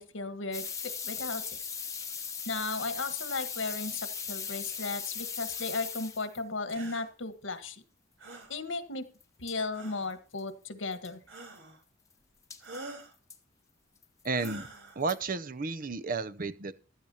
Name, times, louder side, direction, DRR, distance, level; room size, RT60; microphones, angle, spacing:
voice 1, 0.0-1.6 2.4-7.8 8.5-9.1 9.4-11.2, left 3 dB, 85° left, 10 dB, 1.6 m, -35 dB
sound 1, 0.5-6.4 9.2-9.3 9.5-9.6 10.1-10.2 10.4-10.5 10.9-11.1 12.5-12.8 13.3-13.4 14.0-14.5 15.1-15.2, left 6 dB, 15° left, 1.0 m, -38 dB
sound 2, 6.7-7.1 8.2-8.5 9.7-10.2 11.3-11.8 12.6-13.1 14.3-15.0, right 2 dB, 85° right, 3.8 m, -45 dB
voice 2, 14.2-14.7 15.0-16.7, right 4 dB, 45° right, 14 dB, 0.8 m, -32 dB
15.0 x 12.0 x 2.9 m, 0.36 s
head